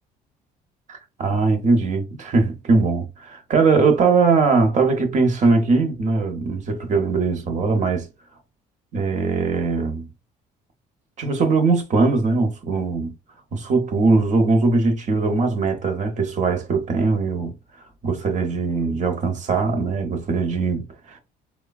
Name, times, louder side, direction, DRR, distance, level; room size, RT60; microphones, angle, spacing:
voice 1, 0.9-8.1 8.9-10.1 11.2-13.1 13.5-17.5 18.0-21.2, right 4 dB, 45° right, 0.8 m, -20 dB
3.2 x 2.2 x 2.3 m
cardioid pair, 110°, 17 cm